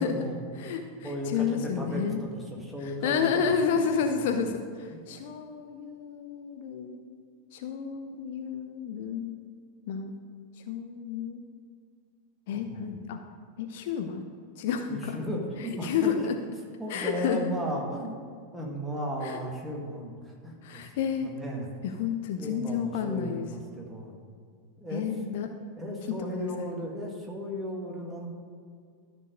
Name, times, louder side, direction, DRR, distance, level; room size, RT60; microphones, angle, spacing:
voice 1, 0.0-0.5 1.0-4.4 4.9-5.0 12.5-13.0 14.9-16.3 16.8-18.1 18.5-20.9 21.2-21.7 22.4-24.2 24.8-25.0 25.8-28.3, equal, 5° right, -1 dB, 1.7 m, -35 dB
voice 2, 0.6-2.2 2.8-7.0 7.5-9.3 9.9-10.1 10.7-11.4 12.5-13.2 13.6-14.3 14.6-15.2 15.8-16.3 16.9-17.4 19.2-19.4 20.6-21.3 21.8-23.5 24.9-25.5 26.1-26.7, left 7 dB, 50° left, 6 dB, 0.6 m, -30 dB
13.0 x 4.6 x 5.1 m, 2.2 s
figure-of-eight pair, 90°, 0 cm